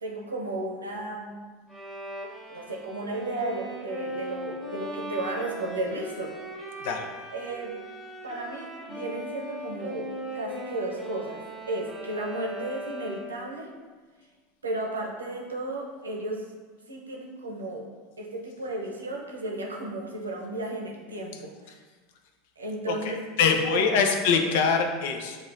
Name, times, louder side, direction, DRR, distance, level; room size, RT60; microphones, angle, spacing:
voice 1, 0.0-1.4 2.5-6.3 7.3-7.8 8.2-13.7 14.6-16.4 16.9-17.9 18.2-21.7 22.6-23.3 23.7-23.9 24.4-24.5, right 2 dB, 90° right, -1 dB, 0.7 m, -34 dB
Bowed string instrument, 1.7-13.5, equal, 5° left, 0.9 m, -39 dB
voice 2, 22.9-25.4, left 5 dB, 65° left, 4 dB, 0.5 m, -24 dB
7.1 x 2.4 x 2.6 m, 1.4 s
hypercardioid pair, 85°, 0 cm